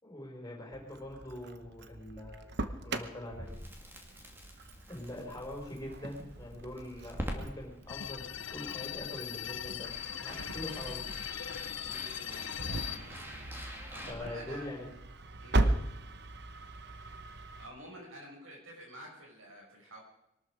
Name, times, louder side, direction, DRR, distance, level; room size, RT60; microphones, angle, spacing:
voice 1, 0.0-2.4 2.8-3.6 4.9-9.9 10.2-11.1 14.1-14.9 15.6-15.8, left 1 dB, 15° left, 0 dB, 4.6 m, -43 dB
Engine starting, 0.7-17.7, right 2 dB, 55° right, 1.0 m, -39 dB
Crackle, 3.3-14.1, equal, 10° right, 2.3 m, -46 dB
sound 1, 7.9-13.0, left 10 dB, 65° left, 0.7 m, -40 dB
voice 2, 11.9-12.6 12.8-13.1 13.9-14.7 15.4-15.6 17.6-20.0, right 1 dB, 85° right, -1 dB, 6.3 m, -49 dB
22.5 x 12.5 x 5.0 m, 0.84 s
head